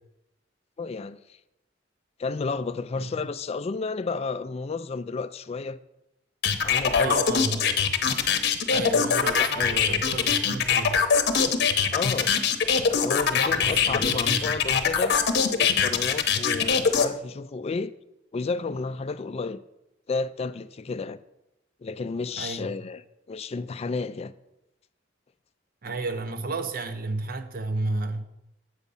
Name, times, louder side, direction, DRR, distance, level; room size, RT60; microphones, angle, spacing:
voice 1, 0.8-1.2 2.2-5.8 6.6-7.2 9.3-10.0 11.9-12.3 12.9-15.2 15.6-17.9 18.3-19.6 20.1-21.2 21.8-23.0 23.3-24.3, left 4 dB, 35° left, 0.3 m, -32 dB
sound 1, 6.4-17.1, left 6 dB, 60° left, 0.8 m, -22 dB
voice 2, 7.0-7.6 8.7-11.1 13.5-14.7 22.4-22.7 25.8-28.2, right 3 dB, 50° right, 0.8 m, -32 dB
8.2 x 5.2 x 6.9 m
head